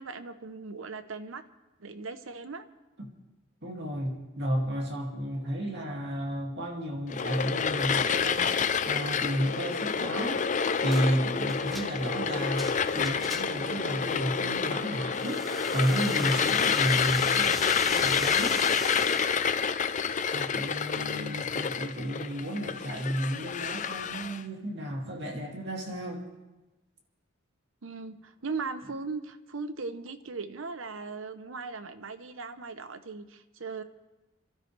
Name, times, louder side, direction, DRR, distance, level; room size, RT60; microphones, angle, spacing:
voice 1, 0.0-1.4 1.8-2.7 20.9-21.7 27.8-33.8, right 4 dB, 85° right, 0.9 m, -38 dB
voice 2, 3.6-8.6 8.9-17.6 17.9-18.7 19.7-26.2, equal, 60° right, 2.4 m, -32 dB
sound 1, 7.1-24.4, left 6 dB, 40° left, 0.5 m, -28 dB
sound 2, 10.9-11.1 11.5-13.7 15.1-19.4, left 1 dB, ahead, 1.1 m, -39 dB
27.5 x 13.0 x 3.3 m
head